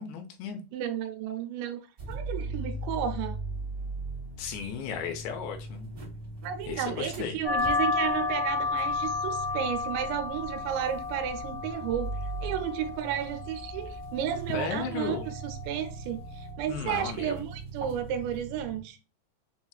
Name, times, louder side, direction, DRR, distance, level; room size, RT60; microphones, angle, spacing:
voice 1, 0.0-0.6 4.4-5.9 6.7-7.4 14.5-15.3 16.7-17.4, left 6 dB, 80° left, 2.5 m, -35 dB
voice 2, 0.7-1.8 2.1-3.4 6.4-12.1 12.4-19.0, right 9 dB, 90° right, 2.8 m, -33 dB
sound 1, 2.0-18.8, right 2 dB, 40° right, 1.2 m, -40 dB
sound 2, 7.4-16.5, left 4 dB, 65° left, 1.1 m, -33 dB
7.1 x 2.4 x 2.2 m
omnidirectional pair, 4.9 m